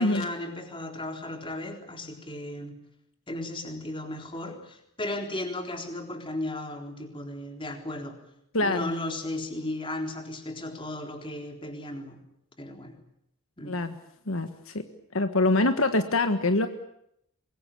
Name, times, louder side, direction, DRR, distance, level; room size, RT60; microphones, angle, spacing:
voice 1, 0.0-2.8 3.3-8.2 8.6-12.2 12.6-13.0 13.6-13.8, left 1 dB, 25° left, 4 dB, 3.9 m, -35 dB
voice 2, 8.5-8.9 13.7-14.0 14.3-14.8 15.1-16.7, left 2 dB, 70° left, 8 dB, 1.6 m, -24 dB
25.0 x 21.5 x 8.5 m, 0.76 s
head